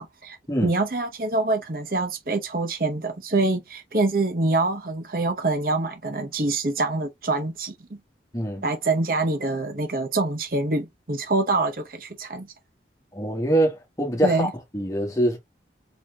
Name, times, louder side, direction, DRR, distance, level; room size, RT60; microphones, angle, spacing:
voice 1, 0.0-8.0 8.6-12.5 14.2-14.5, right 2 dB, 50° right, 0.8 m, -25 dB
voice 2, 13.1-14.5 14.7-15.4, right 1 dB, 20° left, 1.4 m, -24 dB
4.8 x 3.9 x 2.3 m
head